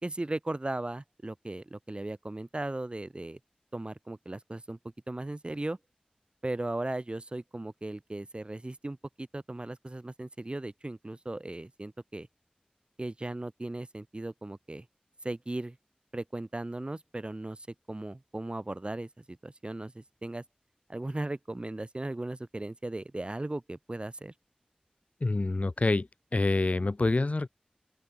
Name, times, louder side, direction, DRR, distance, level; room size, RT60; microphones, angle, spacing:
voice 1, 0.0-3.4 3.7-4.8 5.1-5.8 6.4-12.3 13.0-14.9 15.2-15.8 16.1-20.4 20.9-24.3, right 2 dB, 40° right, 2.6 m, -37 dB
voice 2, 25.2-27.5, left 2 dB, 60° left, 1.9 m, -27 dB
open air
wide cardioid pair, 60°, 3 cm